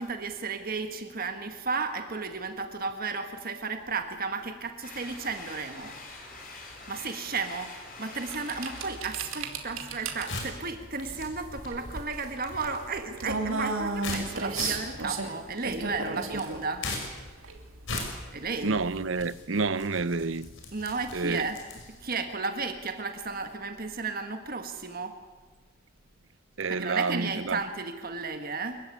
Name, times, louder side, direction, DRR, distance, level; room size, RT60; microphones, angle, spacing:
voice 1, 0.0-6.4 6.9-16.9 18.3-18.8 20.7-25.2 26.7-28.8, right 4 dB, 45° right, 1.6 m, -34 dB
sound 1, 4.8-11.2, left 3 dB, 45° left, 5.3 m, -46 dB
sound 2, 8.3-19.1, right 3 dB, 80° right, 2.7 m, -35 dB
sound 3, 9.9-22.1, left 3 dB, 60° left, 5.7 m, -41 dB
voice 2, 18.6-20.5 21.1-21.4 26.6-27.6, right 4 dB, 65° right, 0.8 m, -29 dB
25.5 x 15.0 x 9.7 m
head